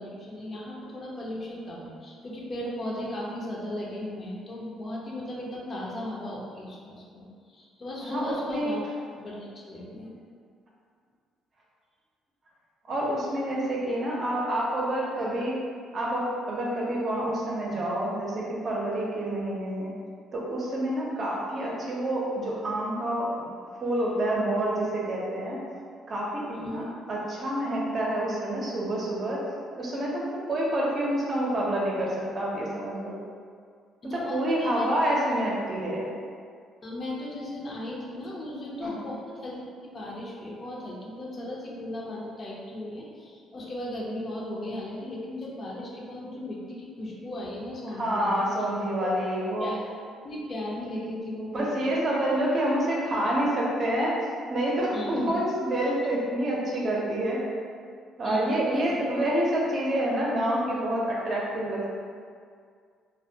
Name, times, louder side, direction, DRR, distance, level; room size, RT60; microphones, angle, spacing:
voice 1, 0.0-8.8 9.2-10.1 26.5-26.9 34.0-34.8 36.8-48.5 49.0-49.2 49.6-49.8 50.2-52.4 54.9-55.3 58.2-59.1, left 1 dB, 45° left, -4 dB, 0.6 m, -36 dB
voice 2, 8.0-8.7 12.9-15.6 15.9-19.9 20.3-23.5 23.8-25.6 26.1-26.5 26.7-29.4 29.7-33.2 34.0-36.1 38.8-39.0 47.9-49.7 51.5-54.2 54.5-57.4 58.2-61.9, right 1 dB, 45° right, -4 dB, 0.6 m, -28 dB
2.2 x 2.1 x 2.7 m, 2.1 s
supercardioid pair, 70°, 0 cm